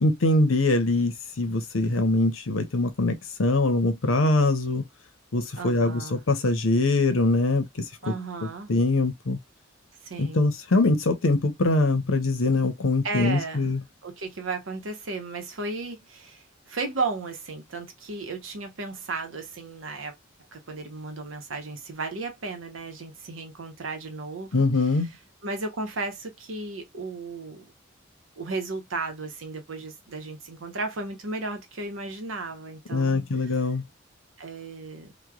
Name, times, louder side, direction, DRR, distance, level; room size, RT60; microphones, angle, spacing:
voice 1, 0.0-4.8 5.3-8.1 8.4-9.4 10.2-13.8 24.5-25.1 32.9-33.8, left 2 dB, 80° left, 0.8 m, -23 dB
voice 2, 5.6-6.2 8.0-8.7 10.0-10.5 13.0-13.7 14.0-20.1 20.5-24.5 25.4-27.6 28.4-33.3 34.4-35.1, right 3 dB, 80° right, 0.9 m, -34 dB
3.0 x 2.2 x 2.3 m
head